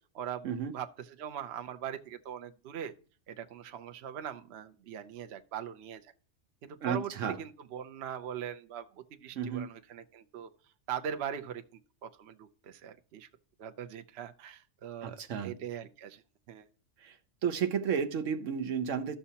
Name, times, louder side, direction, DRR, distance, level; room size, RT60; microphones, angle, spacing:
voice 1, 0.1-2.9 3.3-6.1 6.6-7.1 7.4-10.5 10.9-13.3 13.6-16.2 16.5-16.7, right 9 dB, 65° right, 0.9 m, -41 dB
voice 2, 6.8-7.4 9.4-9.7 15.0-15.5 17.0-17.2 17.4-19.2, right 7 dB, 90° right, 1.2 m, -32 dB
13.0 x 6.9 x 2.8 m
omnidirectional pair, 1.3 m